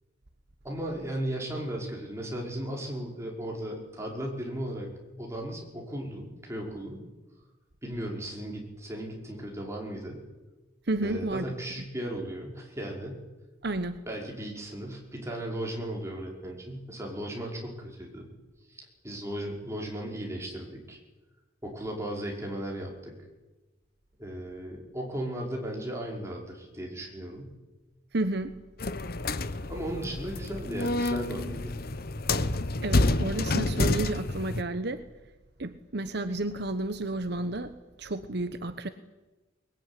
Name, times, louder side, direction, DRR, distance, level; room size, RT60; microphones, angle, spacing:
voice 1, 0.6-4.9 5.2-7.0 7.8-10.2 11.0-13.2 14.1-18.3 18.7-21.0 21.6-23.1 24.2-27.6 29.7-31.8, right 1 dB, 15° right, -1 dB, 5.4 m, -36 dB
voice 2, 10.9-11.5 13.6-14.0 28.1-28.6 32.8-35.0 35.6-38.9, right 2 dB, 55° right, 10 dB, 1.1 m, -31 dB
sound 1, 28.8-34.6, left 2 dB, 50° left, 1.1 m, -28 dB
23.0 x 21.0 x 9.9 m, 1.2 s
head